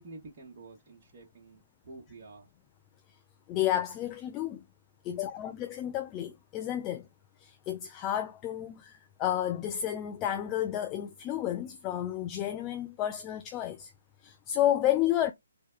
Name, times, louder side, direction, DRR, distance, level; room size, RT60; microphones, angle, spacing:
voice 1, 0.0-2.5, right 3 dB, 40° right, 1.1 m, -49 dB
voice 2, 3.5-4.6 5.0-7.1 7.4-13.9 14.2-15.3, left 12 dB, 20° left, 0.3 m, -31 dB
3.3 x 2.1 x 2.3 m
hypercardioid pair, 145°, 0 cm